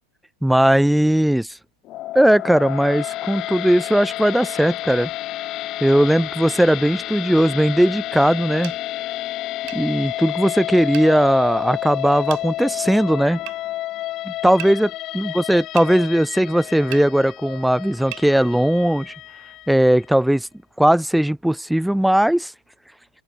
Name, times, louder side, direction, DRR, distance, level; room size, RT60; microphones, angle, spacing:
voice 1, 0.4-1.5 2.1-5.1 5.8-8.7 9.7-13.4 14.3-19.1 19.7-20.5 20.8-22.5, right 1 dB, ahead, 0.5 m, -18 dB
sound 1, 1.8-20.1, left 15 dB, 35° left, 2.6 m, -30 dB
sound 2, 8.6-8.8 9.7-9.8 10.9-11.1 12.3-12.5 13.5-13.6 14.6-14.8 15.8-15.9 16.9-17.1 18.1-18.3, right 30 dB, 45° right, 6.6 m, -35 dB
open air
figure-of-eight pair, 90°, 0 cm